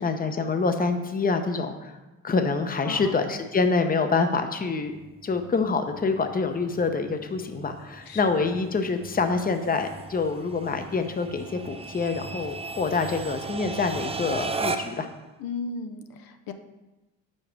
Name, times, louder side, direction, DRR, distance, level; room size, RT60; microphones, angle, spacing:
voice 1, 0.0-2.0 2.2-4.9 5.2-15.1, left 4 dB, 25° left, 7 dB, 0.8 m, -26 dB
sound 1, 4.9-15.1, right 4 dB, 15° right, 0.5 m, -37 dB
voice 2, 8.0-8.5 15.4-16.5, left 4 dB, 65° left, 6 dB, 0.7 m, -36 dB
5.3 x 4.8 x 6.0 m, 1.1 s
supercardioid pair, 75°, 37 cm